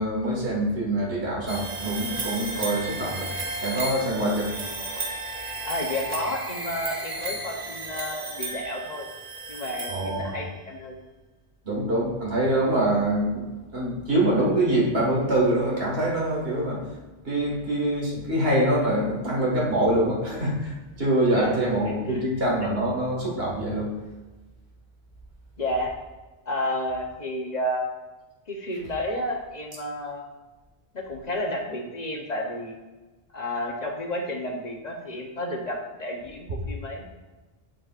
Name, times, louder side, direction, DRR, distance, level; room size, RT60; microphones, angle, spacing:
voice 1, 0.0-3.3 3.6-4.5 9.9-10.3 11.6-13.4 13.7-16.8 17.2-23.9, right 1 dB, 75° right, -4 dB, 2.0 m, -24 dB
sound 1, 1.5-10.5, right 2 dB, 45° right, 1.0 m, -34 dB
voice 2, 5.6-9.1 9.5-11.0 21.3-21.5 22.1-22.3 25.6-25.9 26.5-27.9 28.5-30.2 30.9-32.8 33.3-37.0, left 1 dB, 45° left, 1 dB, 0.9 m, -31 dB
8.0 x 6.2 x 2.4 m, 1.2 s
omnidirectional pair, 1.0 m